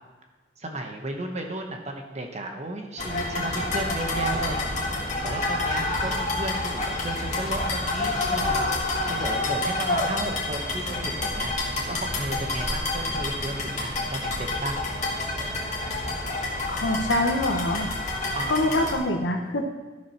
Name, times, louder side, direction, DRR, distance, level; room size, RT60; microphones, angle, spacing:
voice 1, 0.6-4.6 4.9-8.8 9.1-11.5 11.9-14.8 18.3-18.7, right 2 dB, 40° right, 3 dB, 1.2 m, -34 dB
sound 1, 3.0-19.0, left 2 dB, 40° left, 1.9 m, -28 dB
voice 2, 16.7-17.9 18.5-19.7, left 1 dB, 75° left, 3 dB, 1.3 m, -25 dB
12.5 x 5.0 x 5.8 m, 1.3 s
head